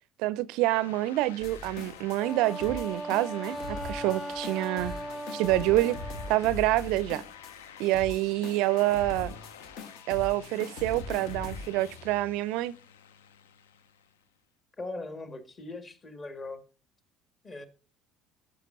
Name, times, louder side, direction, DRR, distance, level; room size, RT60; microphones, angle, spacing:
voice 1, 0.2-4.9 5.3-6.0 6.3-7.2 7.8-9.4 10.1-12.7, right 16 dB, 60° right, 0.4 m, -27 dB
sound 1, 0.6-14.3, left 8 dB, 75° left, 0.6 m, -50 dB
sound 2, 1.4-12.3, left 3 dB, 60° left, 1.1 m, -42 dB
Wind instrument woodwind instrument, 2.2-6.4, right 1 dB, 10° right, 0.6 m, -38 dB
voice 2, 14.8-16.6 17.4-17.7, left 2 dB, 30° left, 1.8 m, -40 dB
12.5 x 6.5 x 2.6 m
figure-of-eight pair, 60°, 0 cm